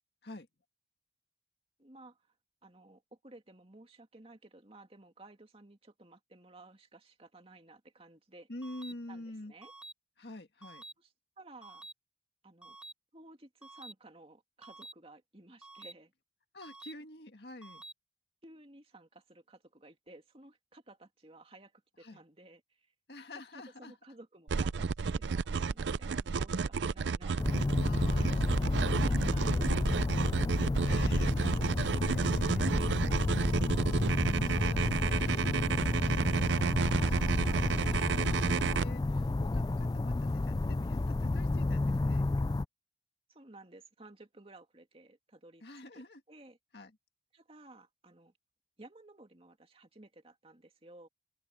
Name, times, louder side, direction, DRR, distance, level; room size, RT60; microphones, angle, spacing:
voice 1, 1.8-2.3 2.6-8.5 9.1-9.7 11.0-11.1 11.4-11.9 12.4-12.8 13.1-16.1 18.4-22.9 23.5-30.0 43.3-45.6 45.9-46.6 47.3-48.3 48.8-51.1, right 2 dB, 30° right, 2.5 m, -56 dB
voice 2, 8.5-9.5 10.2-10.8 16.5-17.8 22.0-22.2 23.1-23.9 27.8-29.1 30.8-33.4 33.7-42.3 45.6-46.2 46.7-46.9, left 2 dB, 65° left, 1.9 m, -48 dB
sound 1, 8.6-8.9 9.6-9.9 10.6-10.9 11.6-11.9 12.6-12.9 13.6-13.9 14.6-14.9 15.6-15.9 16.6-16.9 17.6-17.9, right 2 dB, 5° right, 1.8 m, -49 dB
sound 2, 24.5-38.9, right 5 dB, 80° right, 0.5 m, -31 dB
sound 3, 27.4-42.7, left 2 dB, 20° left, 0.3 m, -31 dB
open air
head